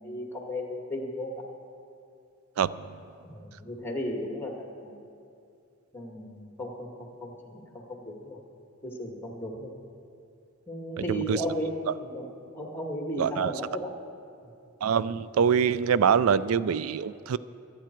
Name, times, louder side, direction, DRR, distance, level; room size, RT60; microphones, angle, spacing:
voice 1, 0.0-1.4 3.2-5.0 5.9-7.6 7.9-8.4 8.8-9.7 10.7-11.7 12.0-12.3 12.5-13.9, equal, 10° left, 1 dB, 1.8 m, -35 dB
voice 2, 11.1-11.4 13.2-13.5 14.8-17.4, right 7 dB, 90° right, 17 dB, 0.4 m, -24 dB
25.5 x 9.2 x 4.5 m, 2.5 s
head